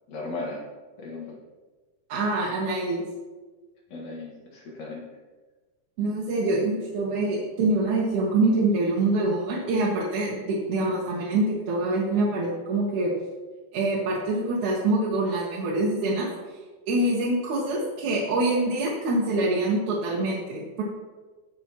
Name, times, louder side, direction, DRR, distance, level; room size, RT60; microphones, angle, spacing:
voice 1, 0.1-0.6 1.0-1.4 3.9-5.1 6.5-6.8, left 3 dB, 65° left, -2 dB, 2.8 m, -36 dB
voice 2, 2.1-3.0 6.0-13.1 13.7-16.3 16.9-20.8, right 2 dB, 75° right, -5 dB, 2.6 m, -25 dB
16.5 x 6.0 x 2.9 m, 1.3 s
omnidirectional pair, 3.6 m